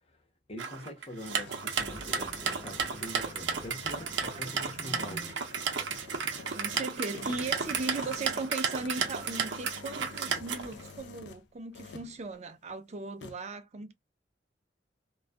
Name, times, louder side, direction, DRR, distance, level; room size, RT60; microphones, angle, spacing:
voice 1, 0.5-5.3, left 1 dB, 35° left, 0.7 m, -44 dB
sound 1, 0.6-10.9, right 6 dB, 90° right, 0.6 m, -33 dB
sound 2, 0.9-11.4 11.7-12.2 13.2-13.4, left 4 dB, 80° left, 0.5 m, -48 dB
sound 3, 1.7-11.4 11.8-12.3, left 1 dB, 10° left, 0.9 m, -52 dB
voice 2, 3.9-5.3 6.5-13.9, right 3 dB, 40° right, 0.5 m, -38 dB
2.3 x 2.2 x 2.4 m
head